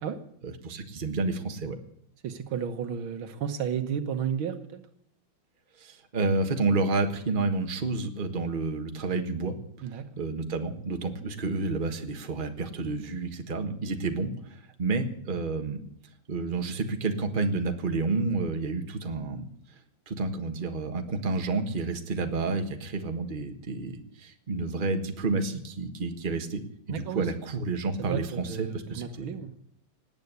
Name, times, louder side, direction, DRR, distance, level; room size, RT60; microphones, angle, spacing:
voice 1, 0.4-1.8 5.8-9.6 10.2-15.8 16.3-19.4 20.1-26.6 26.9-29.3, right 3 dB, 25° right, 5 dB, 1.4 m, -30 dB
voice 2, 2.2-4.8 9.8-10.0 26.9-27.3 28.1-29.5, right 8 dB, 75° right, 9 dB, 1.9 m, -32 dB
18.5 x 9.1 x 8.1 m, 0.69 s
omnidirectional pair, 2.3 m